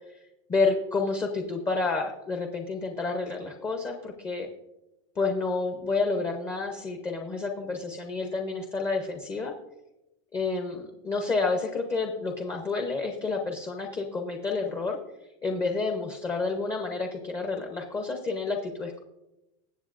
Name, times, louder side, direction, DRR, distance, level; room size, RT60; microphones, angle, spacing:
voice 1, 0.5-4.5 5.2-9.5 10.3-15.0 15.4-19.0, left 3 dB, 15° left, 3 dB, 0.7 m, -29 dB
20.5 x 7.6 x 2.5 m, 0.94 s
supercardioid pair, 180°, 16 cm